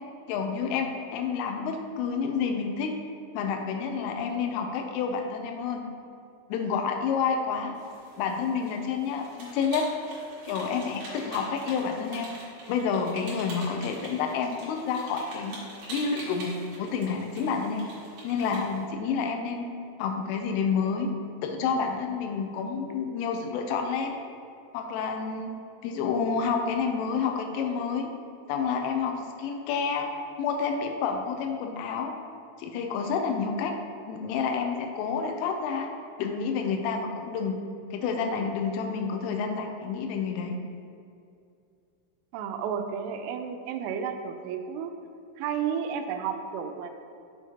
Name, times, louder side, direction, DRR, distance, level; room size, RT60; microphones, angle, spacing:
voice 1, 0.3-2.9 3.3-5.8 6.5-7.7 8.2-9.9 10.5-12.3 12.7-15.6 15.9-16.5 16.8-17.9 18.2-19.6 20.0-21.1 21.4-24.2 24.7-25.5 25.8-28.1 28.5-30.1 30.4-32.1 32.6-33.7 34.1-35.9 36.2-37.6 37.9-40.6, left 5 dB, 85° left, 4 dB, 3.2 m, -29 dB
sound 1, 7.7-18.8, right 1 dB, 55° right, 2.1 m, -44 dB
voice 2, 42.3-44.9 45.4-46.9, right 7 dB, 85° right, 6 dB, 3.1 m, -32 dB
7.2 x 6.9 x 2.9 m, 2.4 s
omnidirectional pair, 5.7 m